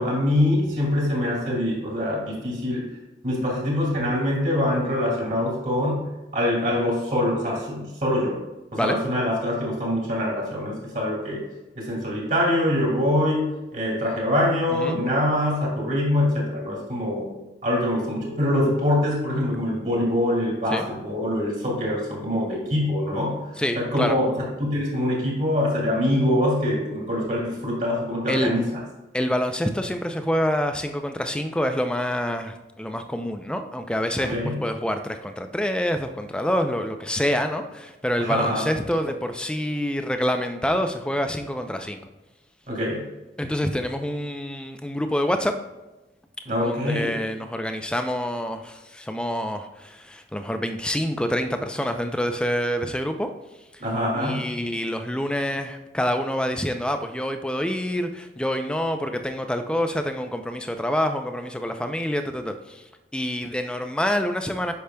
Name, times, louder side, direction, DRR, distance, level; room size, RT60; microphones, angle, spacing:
voice 1, 0.0-2.9 3.2-8.4 8.7-11.4 11.7-17.3 17.6-23.5 23.8-28.6 34.3-34.6 38.2-38.7 42.7-43.1 46.5-47.1 53.8-54.5, left 1 dB, 45° right, -3 dB, 2.3 m, -24 dB
voice 2, 14.7-15.1 20.7-20.9 23.6-24.2 28.3-28.5 29.1-42.0 43.4-45.5 46.6-53.3 53.7-53.8 54.2-62.8 63.1-64.7, equal, 5° left, 6 dB, 0.4 m, -27 dB
8.3 x 5.9 x 2.2 m, 1.1 s
head